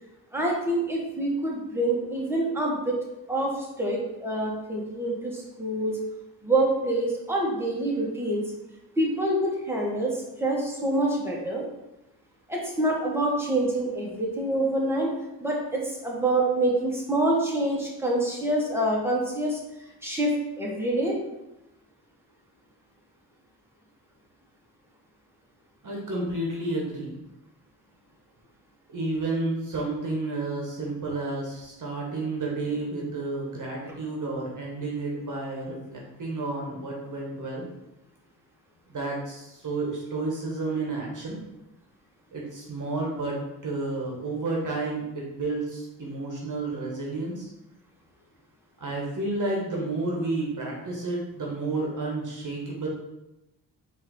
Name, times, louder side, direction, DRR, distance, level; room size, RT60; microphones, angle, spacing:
voice 1, 0.3-3.0 3.3-6.0 6.4-8.4 9.0-11.6 12.5-15.1 15.4-19.6 20.0-21.2, right 1 dB, 5° right, -3 dB, 1.6 m, -26 dB
voice 2, 25.8-27.2 28.9-37.7 38.9-41.4 42.3-47.5 48.8-52.9, right 2 dB, 45° right, -2 dB, 1.3 m, -31 dB
4.4 x 2.9 x 3.9 m, 0.92 s
supercardioid pair, 55°, 42 cm